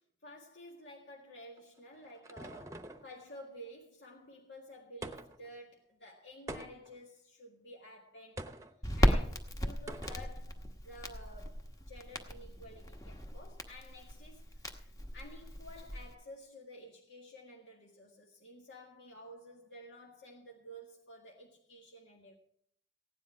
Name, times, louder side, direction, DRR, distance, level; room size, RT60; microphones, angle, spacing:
voice 1, 0.0-8.4 9.0-22.4, equal, 85° left, 1.8 m, -52 dB
sound 1, 1.6-3.1 5.0-5.5 6.5-7.0 8.4-8.7 9.9-10.3, right 1 dB, 15° right, 0.8 m, -45 dB
Crackle, 8.8-16.1, equal, 20° left, 1.1 m, -35 dB
16.0 x 10.0 x 4.7 m
head